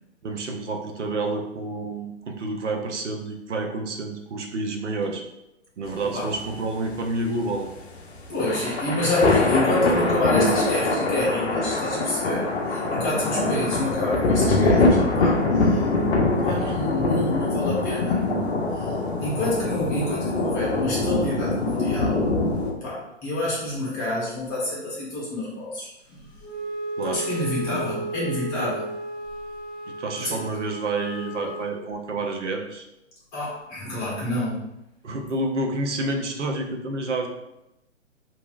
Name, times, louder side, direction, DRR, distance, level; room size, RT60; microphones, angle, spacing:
voice 1, 0.2-5.2 5.8-7.7 16.4-16.8 27.0-27.2 29.9-32.9 35.0-37.3, right 2 dB, 70° right, 3 dB, 0.6 m, -29 dB
sound 1, 5.9-22.7, left 2 dB, 60° left, 0.6 m, -23 dB
voice 2, 8.3-15.9 16.1-18.5 18.7-22.3 22.8-26.3 27.0-28.9 30.2-30.4 33.3-34.6, left 1 dB, 20° left, -7 dB, 1.1 m, -28 dB
Wind instrument woodwind instrument, 26.4-31.7, right 1 dB, 5° right, 0.5 m, -34 dB
2.9 x 2.7 x 2.4 m, 0.88 s
figure-of-eight pair, 135°, 38 cm